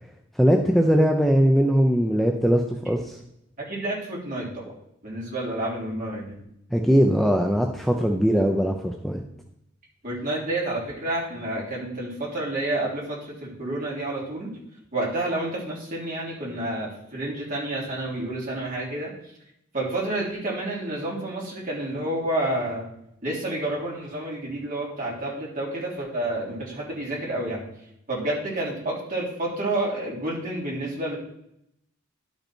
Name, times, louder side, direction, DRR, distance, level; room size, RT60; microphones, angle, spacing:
voice 1, 0.4-3.2 6.7-9.2, equal, ahead, 2 dB, 0.5 m, -20 dB
voice 2, 3.6-4.6 5.0-6.3 10.0-14.5 14.9-19.1 19.7-22.9 23.2-27.6 28.1-31.2, right 1 dB, 40° right, -5 dB, 3.3 m, -29 dB
11.5 x 5.4 x 4.4 m, 0.77 s
head